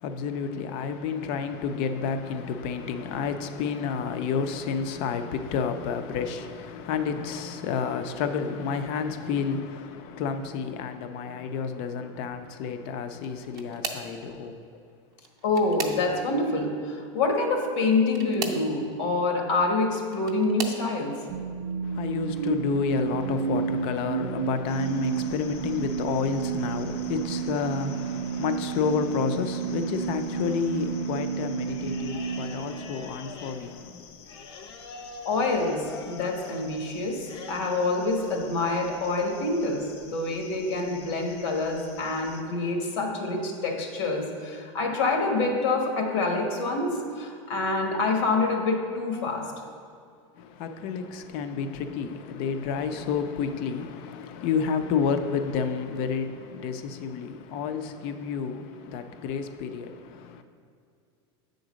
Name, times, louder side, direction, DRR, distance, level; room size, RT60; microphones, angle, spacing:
voice 1, 0.0-14.6 21.8-34.2 50.3-60.4, left 6 dB, 35° left, 0.4 m, -30 dB
sound 1, 13.1-14.2 15.1-16.4 18.0-18.7 19.8-20.9 21.6-22.0 22.4-22.5 23.8-23.9, right 6 dB, 25° right, 0.6 m, -37 dB
voice 2, 15.4-21.2 35.2-49.5, left 3 dB, 85° left, 1.5 m, -26 dB
sound 2, 21.3-33.5, right 7 dB, 90° right, 0.4 m, -31 dB
sound 3, 24.7-42.4, left 4 dB, 65° left, 0.8 m, -46 dB
8.0 x 3.9 x 6.2 m
supercardioid pair, 175°, 15 cm